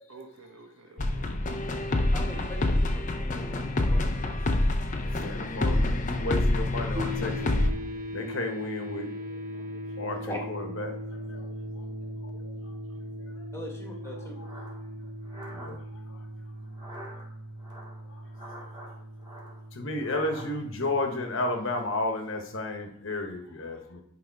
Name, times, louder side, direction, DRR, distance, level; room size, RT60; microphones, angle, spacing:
voice 1, 0.1-1.4 5.5-6.0 6.8-7.1 12.9-13.0, right 3 dB, 85° right, 2 dB, 1.5 m, -50 dB
sound 1, 1.0-7.7, left 1 dB, 35° left, 0.6 m, -27 dB
voice 2, 2.1-4.4 10.2-10.4 13.5-14.3, equal, 10° left, 0 dB, 1.3 m, -41 dB
voice 3, 3.5-3.8 5.1-7.5 8.1-9.1 10.0-11.4 14.4-14.5 15.5-15.8 19.7-24.0, left 2 dB, 60° left, 5 dB, 1.1 m, -32 dB
sound 2, 6.9-22.2, equal, 40° right, 0.7 m, -39 dB
sound 3, 14.0-15.7 16.6-17.2 17.6-18.9 19.2-20.5, right 1 dB, 20° right, 2.1 m, -45 dB
10.0 x 3.4 x 4.6 m, 0.71 s
head